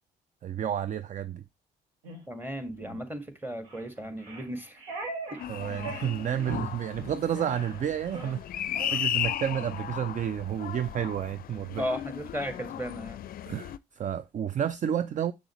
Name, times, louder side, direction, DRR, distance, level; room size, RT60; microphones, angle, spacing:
voice 1, 0.4-1.4 5.5-11.8 13.5-15.3, right 9 dB, 40° right, 0.4 m, -31 dB
sound 1, 2.0-2.2 2.8-3.0 3.7-3.9 4.2-5.5 5.8-6.1 6.4-6.7 6.9-7.1 7.4-7.8 8.0-8.4 8.8-9.0, right 2 dB, 85° right, 1.6 m, -39 dB
voice 2, 2.3-4.8 5.3-5.4 11.8-13.3, equal, 10° right, 1.8 m, -35 dB
sound 2, 5.4-13.8, left 11 dB, 45° left, 0.5 m, -36 dB
7.1 x 6.1 x 3.0 m
hypercardioid pair, 50°, 20 cm